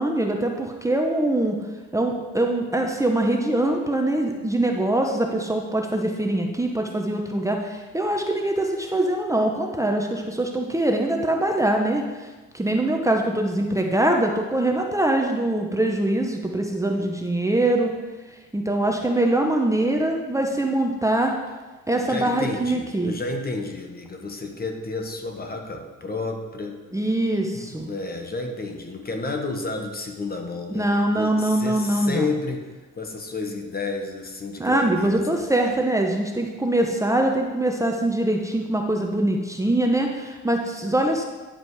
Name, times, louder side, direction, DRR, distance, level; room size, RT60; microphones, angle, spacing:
voice 1, 0.0-1.6 1.9-12.3 12.5-17.9 18.5-21.3 21.9-23.1 26.9-27.9 30.7-32.3 34.6-41.2, right 1 dB, 10° right, 2 dB, 0.9 m, -23 dB
voice 2, 22.0-26.8 27.5-32.7 33.0-35.4, left 3 dB, 30° left, 3 dB, 1.2 m, -31 dB
10.0 x 5.0 x 4.8 m, 1.2 s
cardioid pair, 90°, 30 cm